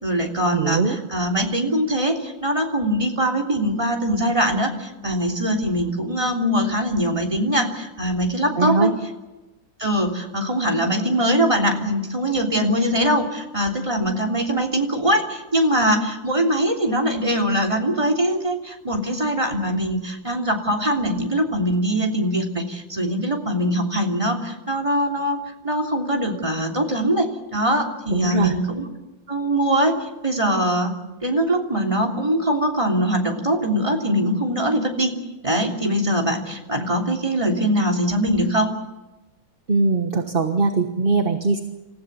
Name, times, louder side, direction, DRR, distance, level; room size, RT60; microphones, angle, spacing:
voice 1, 0.0-8.9 9.8-25.4 25.6-28.8 29.3-35.1 35.4-38.7, equal, 15° right, 1 dB, 3.3 m, -22 dB
voice 2, 0.5-1.0 8.6-8.9 28.1-28.5 39.7-41.6, right 3 dB, 30° right, 6 dB, 1.4 m, -21 dB
28.0 x 15.5 x 8.3 m, 1.1 s
omnidirectional pair, 2.0 m